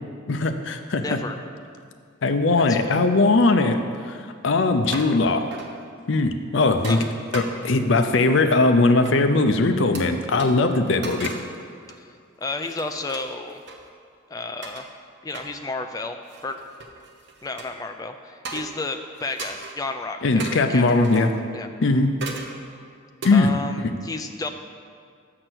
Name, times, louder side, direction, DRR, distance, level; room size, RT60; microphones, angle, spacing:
voice 1, 0.3-1.2 2.2-3.8 4.1-4.2 4.4-5.4 6.1-7.0 7.3-11.3 20.2-21.3 21.8-22.1 23.2-23.5 23.8-23.9, left 3 dB, 65° left, 7 dB, 0.5 m, -20 dB
voice 2, 1.0-1.4 2.5-3.0 6.9-7.0 12.4-13.6 14.3-14.9 15.2-16.2 16.4-16.6 17.4-21.3 21.5-21.7 23.3-24.5, left 3 dB, 20° left, 6 dB, 0.3 m, -32 dB
sound 1, 4.8-5.2 5.5-5.7 6.7-8.0 9.0-9.2 9.9-10.0 10.4-10.5 11.0-11.5 11.9-12.1 12.5-13.8 14.6-14.9 15.3-15.5 16.2-17.7 18.4-18.8 19.2-19.8 20.4-21.4 22.2-22.6 23.2-23.4, right 3 dB, 60° right, 0.8 m, -37 dB
6.7 x 5.9 x 6.2 m, 2.2 s
head